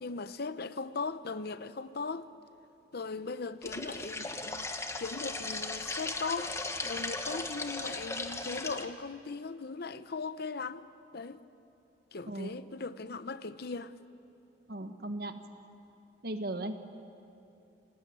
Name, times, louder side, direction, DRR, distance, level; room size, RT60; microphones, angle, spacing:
voice 1, 0.0-2.3 2.9-4.7 5.0-6.5 6.8-10.8 11.1-11.4 12.1-13.9, left 4 dB, 60° left, 0.8 m, -38 dB
sound 1, 3.6-8.9, left 3 dB, 15° left, 1.3 m, -37 dB
voice 2, 14.7-15.4 16.2-16.7, right 1 dB, 60° right, 1.6 m, -37 dB
27.5 x 18.5 x 8.8 m
head